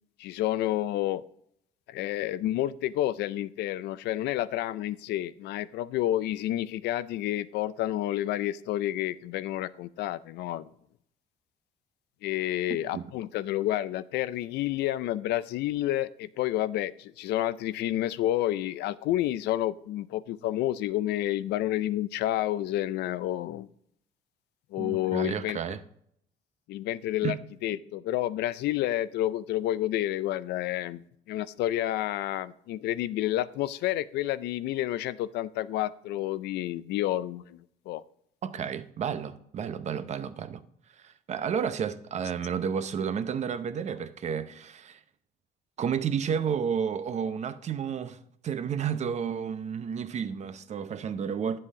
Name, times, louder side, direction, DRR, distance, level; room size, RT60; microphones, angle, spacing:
voice 1, 0.2-1.2 1.9-10.7 12.2-23.7 24.7-25.8 26.7-37.6 37.9-38.0, left 14 dB, 80° left, 0.5 m, -30 dB
voice 2, 24.8-25.8 27.2-27.4 38.4-40.6 41.0-45.0 45.8-48.2 48.4-51.6, right 7 dB, 40° right, 0.7 m, -31 dB
9.6 x 7.6 x 3.6 m
cardioid pair, 110°, 17 cm